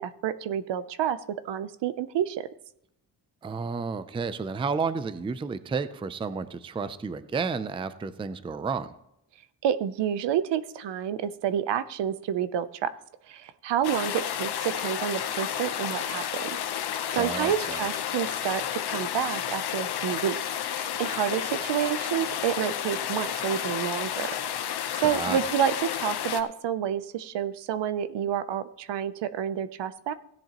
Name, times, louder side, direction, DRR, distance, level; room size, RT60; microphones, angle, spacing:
voice 1, 0.0-2.5 9.6-12.9 13.3-16.5 17.2-20.4 20.7-24.4 25.0-30.1, right 9 dB, 75° right, 14 dB, 0.7 m, -29 dB
voice 2, 3.4-8.9 17.1-17.8 25.0-25.4, right 5 dB, 15° right, 13 dB, 0.4 m, -31 dB
sound 1, 13.8-26.4, left 10 dB, 65° left, 0.9 m, -31 dB
16.5 x 10.5 x 3.0 m, 0.79 s
cardioid pair, 140°, 43 cm